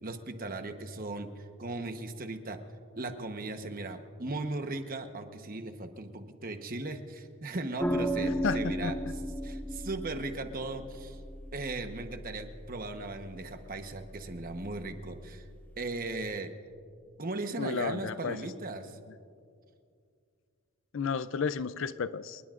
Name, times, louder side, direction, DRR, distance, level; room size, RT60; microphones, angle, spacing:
voice 1, 0.0-2.6 3.0-9.0 9.4-11.2 11.5-15.5 15.8-16.5 17.2-19.0, right 2 dB, 40° right, 7 dB, 1.0 m, -37 dB
sound 1, 7.8-16.4, equal, 10° left, 1.0 m, -37 dB
voice 2, 8.4-8.9 17.6-18.4 20.9-22.4, left 5 dB, 60° left, 15 dB, 0.4 m, -32 dB
28.5 x 20.0 x 2.5 m, 2.3 s
head